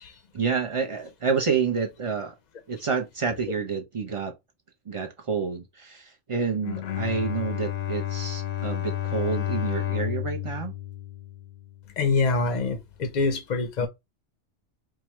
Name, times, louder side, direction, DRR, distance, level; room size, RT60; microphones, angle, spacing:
voice 1, 0.3-2.3 2.7-4.3 4.9-10.7 13.8-13.9, right 5 dB, 45° right, 0.4 m, -29 dB
Bowed string instrument, 6.6-11.9, left 12 dB, 90° left, 1.0 m, -31 dB
voice 2, 12.0-13.9, left 3 dB, 50° left, 0.5 m, -25 dB
4.6 x 2.1 x 3.0 m
omnidirectional pair, 1.2 m